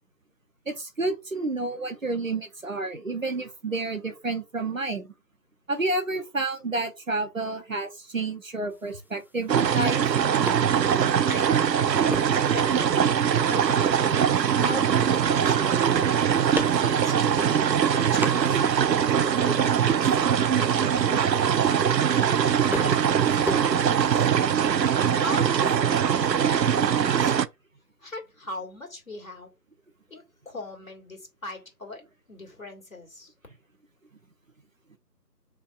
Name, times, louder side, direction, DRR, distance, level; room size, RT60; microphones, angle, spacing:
voice 1, 0.7-5.1 5.7-10.0 19.4-19.5, right 2 dB, 55° right, 0.8 m, -30 dB
sound 1, 8.7-24.3, left 1 dB, 5° right, 0.3 m, -40 dB
sound 2, 9.5-27.5, right 8 dB, 85° right, 0.6 m, -22 dB
voice 2, 10.7-11.8 12.1-15.9 16.6-17.4 17.9-21.5 22.8-24.3 25.1-27.3 28.0-29.5 30.1-32.0 32.3-33.3, left 2 dB, 55° left, 2.1 m, -40 dB
4.6 x 3.5 x 2.4 m
figure-of-eight pair, 170°, 49 cm